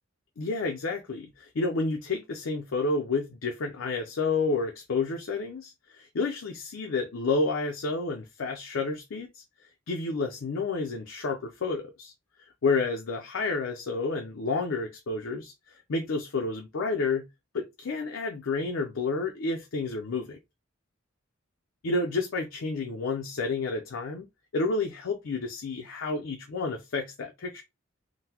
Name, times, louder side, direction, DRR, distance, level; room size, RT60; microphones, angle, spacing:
voice 1, 0.4-9.4 9.9-12.1 12.6-17.3 17.5-20.4 21.8-24.3 24.5-27.6, left 3 dB, 70° left, 0.5 m, -30 dB
3.8 x 2.1 x 2.8 m
head